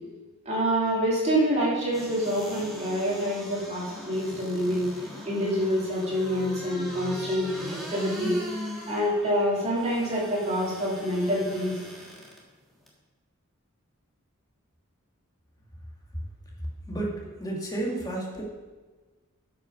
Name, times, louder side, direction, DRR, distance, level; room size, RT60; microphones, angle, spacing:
voice 1, 0.4-4.9 5.2-8.4 8.9-11.8, equal, 30° right, -6 dB, 2.9 m, -26 dB
sound 1, 1.9-12.4 12.9-13.0, left 1 dB, ahead, 1.4 m, -40 dB
voice 2, 16.9-18.4, right 2 dB, 15° left, -2 dB, 1.7 m, -32 dB
8.9 x 5.8 x 5.8 m, 1.3 s
head